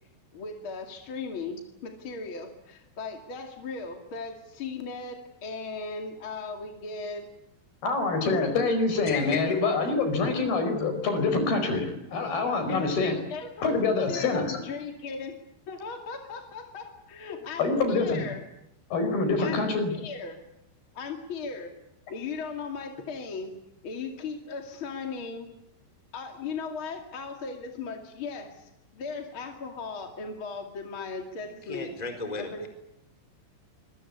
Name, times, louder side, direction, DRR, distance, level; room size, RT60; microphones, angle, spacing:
voice 1, 0.3-7.2 12.7-15.4 15.7-18.4 19.4-20.4 20.9-21.7 22.1-23.5 23.8-25.5 26.1-31.9 32.4-32.7, left 4 dB, 40° left, 4 dB, 2.2 m, -37 dB
voice 2, 7.8-13.2 13.6-14.6 17.6-18.2 18.9-19.9, left 3 dB, 55° left, 6 dB, 6.4 m, -26 dB
voice 3, 9.0-9.4 31.4-32.7, left 4 dB, 10° left, 6 dB, 3.5 m, -34 dB
25.5 x 22.5 x 8.6 m, 0.80 s
omnidirectional pair, 5.5 m